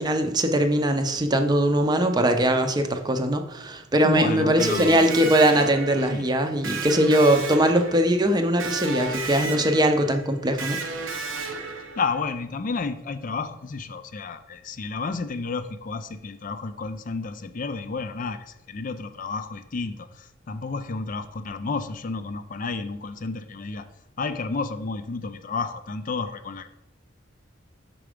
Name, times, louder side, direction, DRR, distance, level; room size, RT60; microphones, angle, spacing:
voice 1, 0.0-10.8, right 1 dB, 20° right, 6 dB, 0.6 m, -21 dB
voice 2, 4.0-5.1 6.0-6.3 11.4-23.9 24.2-26.7, left 4 dB, 40° left, 10 dB, 0.4 m, -31 dB
Electric guitar, 4.6-12.3, right 4 dB, 85° right, 0.8 m, -33 dB
6.1 x 4.6 x 5.0 m, 0.95 s
head